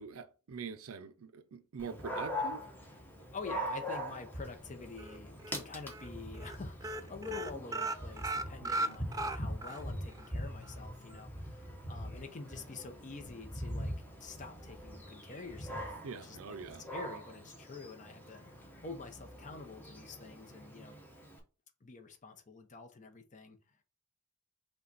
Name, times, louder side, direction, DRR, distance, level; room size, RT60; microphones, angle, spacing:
voice 1, 0.0-2.7 8.6-9.0 16.0-16.9, right 5 dB, 70° right, 0.5 m, -44 dB
Dog, 1.8-21.4, equal, 10° left, 0.9 m, -43 dB
voice 2, 3.3-13.9 14.2-16.6 16.9-21.0 21.8-23.6, left 4 dB, 35° left, 0.7 m, -47 dB
sound 1, 5.0-5.6 5.9-6.1 6.3-6.6 6.8-9.8 10.2-10.3 10.6-10.7, right 2 dB, 15° right, 0.3 m, -36 dB
5.4 x 2.3 x 4.0 m
head